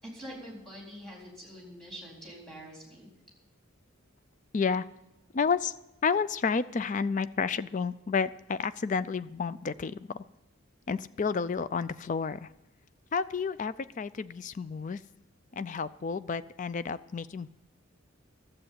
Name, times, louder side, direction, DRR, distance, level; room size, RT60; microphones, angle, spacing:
voice 1, 0.0-3.1, equal, ahead, -3 dB, 4.1 m, -45 dB
voice 2, 4.5-4.9 5.3-5.8 6.0-10.2 10.9-12.5 13.1-15.0 15.5-17.5, left 5 dB, 35° left, 15 dB, 0.4 m, -31 dB
12.5 x 7.7 x 8.7 m, 0.94 s
head